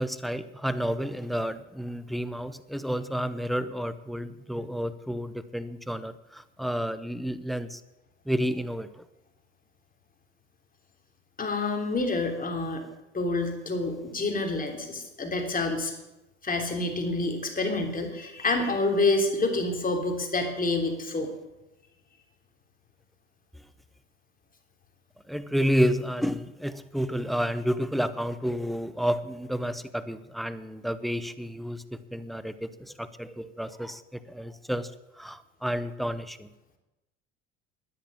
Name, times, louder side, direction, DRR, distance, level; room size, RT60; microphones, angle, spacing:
voice 1, 0.0-7.8 8.3-9.0 25.3-34.9 35.2-36.5, equal, ahead, 13 dB, 0.8 m, -30 dB
voice 2, 11.4-12.8 13.1-15.9 16.4-21.3, left 2 dB, 25° left, 3 dB, 3.2 m, -28 dB
11.0 x 10.0 x 8.7 m, 0.98 s
hypercardioid pair, 85°, 36 cm